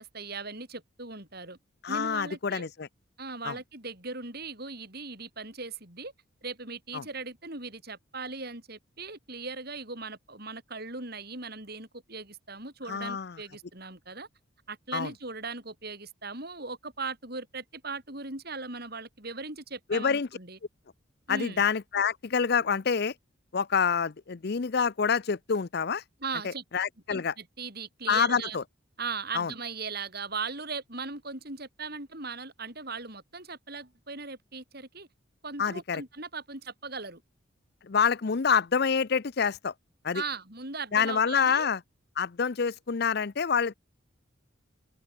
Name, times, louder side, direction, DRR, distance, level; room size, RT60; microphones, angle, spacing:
voice 1, 0.0-1.6 1.9-2.7 3.2-6.1 6.4-14.3 14.7-20.6 21.3-21.6 26.2-26.6 27.1-28.6 29.0-35.1 35.4-37.2 40.1-41.7, right 4 dB, 50° right, 6.0 m, -39 dB
voice 2, 1.8-2.9 3.4-3.6 6.9-7.0 12.9-13.4 14.9-15.1 19.9-20.3 21.3-23.1 23.5-26.0 26.7-27.3 28.1-28.6 29.3-29.5 35.6-36.0 37.9-39.7 40.0-40.2 40.9-41.8 42.2-43.8, left 6 dB, 50° left, 0.5 m, -27 dB
head